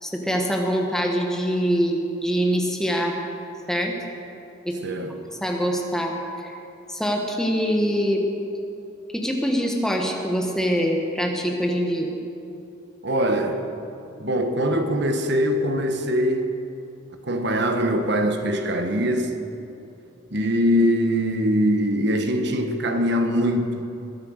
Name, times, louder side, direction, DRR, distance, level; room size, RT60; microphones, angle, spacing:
voice 1, 0.0-3.2 3.7-3.9 4.6-4.8 5.4-6.1 6.4-6.5 6.9-8.2 9.1-12.1, equal, 5° left, 1 dB, 1.3 m, -24 dB
voice 2, 4.8-5.2 13.0-13.6 14.2-16.5 17.2-19.3 20.3-23.8, equal, 55° right, 6 dB, 1.3 m, -22 dB
21.5 x 9.6 x 6.5 m, 2.9 s
head